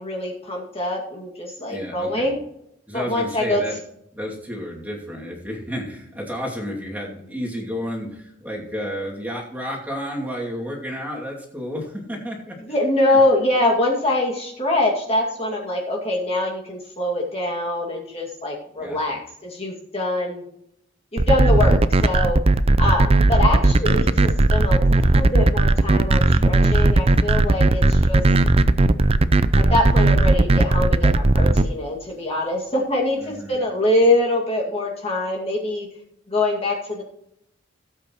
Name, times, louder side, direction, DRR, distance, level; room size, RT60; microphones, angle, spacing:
voice 1, 0.0-2.4 2.9-3.6 12.7-20.4 21.1-22.4 22.8-28.2 29.7-35.9 36.3-37.0, left 1 dB, 30° left, -2 dB, 2.2 m, -23 dB
voice 2, 1.7-2.3 2.9-3.8 4.1-12.6 13.1-13.2 18.8-19.2 33.2-33.6, equal, 10° right, -3 dB, 2.5 m, -31 dB
sound 1, 21.2-31.6, right 2 dB, 30° right, 0.5 m, -16 dB
17.0 x 8.4 x 3.1 m, 0.78 s
head